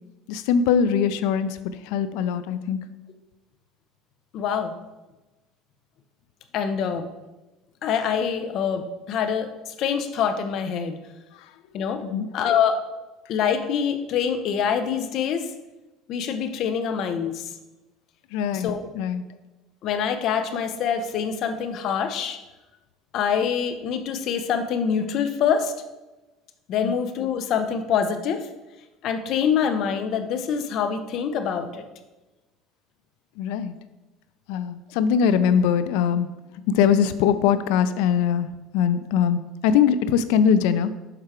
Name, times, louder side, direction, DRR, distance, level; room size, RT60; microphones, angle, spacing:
voice 1, 0.3-1.6 1.8-2.8 11.3-11.5 12.0-12.3 18.3-19.2 26.8-27.0 33.4-33.7 34.5-36.3 36.7-38.5 38.7-40.9, left 7 dB, 80° left, 13 dB, 0.4 m, -22 dB
voice 2, 4.3-4.7 6.5-7.0 7.8-10.9 11.7-12.1 12.3-12.8 13.3-15.5 16.1-17.5 18.5-18.8 19.8-22.4 23.1-25.7 26.7-28.5 29.0-31.8, left 7 dB, 55° left, 8 dB, 0.7 m, -25 dB
6.7 x 4.7 x 4.4 m, 1.1 s
cardioid pair, 130°, 0 cm